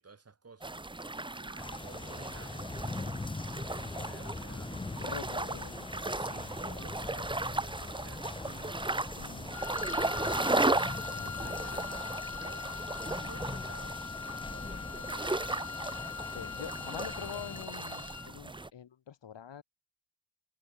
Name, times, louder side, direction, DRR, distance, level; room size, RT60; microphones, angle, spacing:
voice 1, 0.0-2.9 3.4-4.8 5.9-8.9 11.4-12.7 13.2-15.5, right 4 dB, 30° right, 3.2 m, -54 dB
sound 1, 0.6-18.7, right 2 dB, 10° right, 0.9 m, -36 dB
sound 2, 1.6-17.7, left 3 dB, 10° left, 0.4 m, -42 dB
voice 2, 4.9-5.9 9.2-9.5 11.1-11.5 16.3-19.6, left 8 dB, 60° left, 2.5 m, -45 dB
Wind instrument woodwind instrument, 9.5-18.4, left 7 dB, 35° left, 1.3 m, -42 dB
wide cardioid pair, 170°, 50 cm